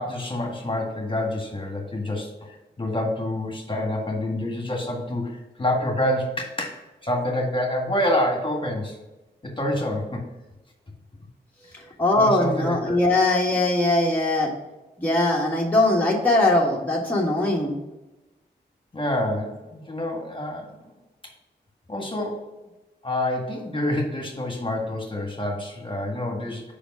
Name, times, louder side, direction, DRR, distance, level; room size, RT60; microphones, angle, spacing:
voice 1, 0.0-9.0 9.4-10.2 12.1-13.0 18.9-20.7 21.9-22.5 23.0-26.6, left 1 dB, 25° left, 1 dB, 1.7 m, -27 dB
voice 2, 12.0-14.5 15.0-17.8, left 2 dB, 10° left, -3 dB, 1.5 m, -21 dB
5.1 x 5.0 x 6.1 m, 1.0 s
cardioid pair, 50°, 19 cm